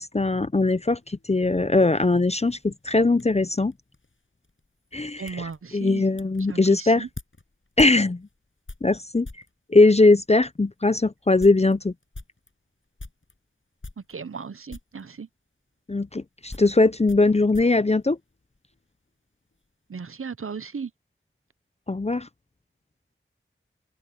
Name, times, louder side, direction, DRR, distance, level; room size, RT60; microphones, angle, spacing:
voice 1, 0.0-3.7 4.9-7.1 7.8-8.2 8.8-9.3 9.7-11.9 15.9-18.2 21.9-22.3, left 2 dB, 30° left, 0.5 m, -20 dB
sound 1, 0.9-9.6 10.3-10.4 10.8-10.9 11.2-13.4 13.8-14.4 14.7-15.1 15.9-18.8 19.1-19.7, left 2 dB, 70° left, 6.7 m, -45 dB
voice 2, 5.2-6.0 6.5-7.1 14.1-15.3 19.9-20.9, right 5 dB, 80° right, 0.6 m, -36 dB
open air
wide cardioid pair, 45°, 21 cm